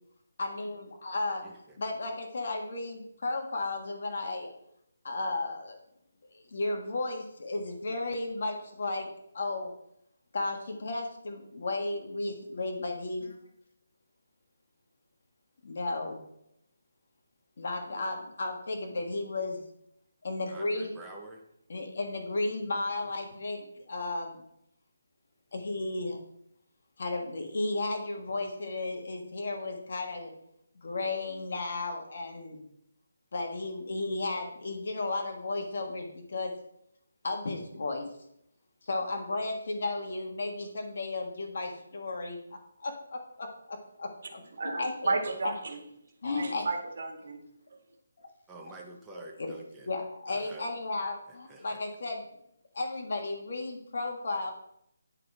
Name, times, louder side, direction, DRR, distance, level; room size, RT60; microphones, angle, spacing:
voice 1, 0.4-1.4 1.8-4.5 5.0-5.8 6.3-9.1 9.3-9.7 10.3-13.3 15.6-16.2 17.6-19.6 20.2-20.9 21.7-24.4 25.5-26.2 27.0-30.3 30.8-32.6 33.3-36.6 37.2-38.1 38.8-42.4 42.8-44.4 44.8-45.1 45.4-45.5 46.2-46.7 48.2-48.3 49.4-49.5 49.9-52.2 52.7-54.5, left 2 dB, 55° left, 2 dB, 1.6 m, -34 dB
voice 2, 1.4-1.8 20.5-21.4 23.0-23.1 48.5-50.0 50.3-50.7 51.3-51.8, right 2 dB, 5° right, -2 dB, 1.0 m, -48 dB
voice 3, 44.6-45.8 46.3-47.4, right 3 dB, 55° right, 3 dB, 2.1 m, -32 dB
9.7 x 4.9 x 4.3 m, 0.76 s
hypercardioid pair, 165°, 0 cm